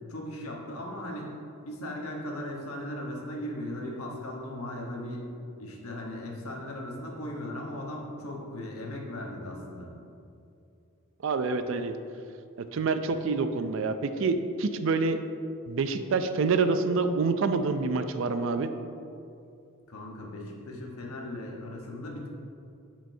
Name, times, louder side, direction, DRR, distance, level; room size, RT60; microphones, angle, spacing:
voice 1, 0.1-1.3 1.6-5.3 5.6-9.9 19.9-22.3, left 1 dB, 85° left, -1 dB, 1.1 m, -37 dB
voice 2, 11.2-12.0 12.6-15.2 15.7-18.7, right 4 dB, 60° right, 9 dB, 0.4 m, -27 dB
8.9 x 5.2 x 2.7 m, 2.6 s
head